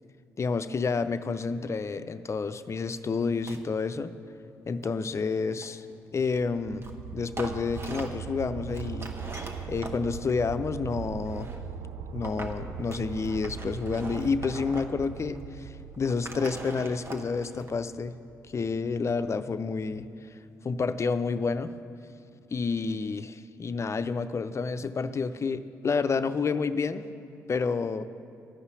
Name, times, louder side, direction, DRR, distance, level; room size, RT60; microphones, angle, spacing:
voice 1, 0.4-4.1 4.7-5.9 6.1-6.9 7.1-9.1 9.7-11.5 12.1-18.1 18.5-20.1 20.6-21.7 22.5-27.0 27.5-28.1, left 4 dB, 40° left, 12 dB, 0.5 m, -29 dB
sound 1, 2.9-3.0 3.2-3.6 4.7-5.9 6.8-7.0 7.3-8.3 8.7-10.0 10.9-11.6 12.2-12.6 12.9-15.1 15.3-15.4 15.9-17.7, right 2 dB, 35° right, 1.2 m, -42 dB
sound 2, 6.2-19.0 19.5-19.6, right 7 dB, 70° right, 0.4 m, -40 dB
13.0 x 5.6 x 8.3 m, 2.5 s
hypercardioid pair, 50°, 8 cm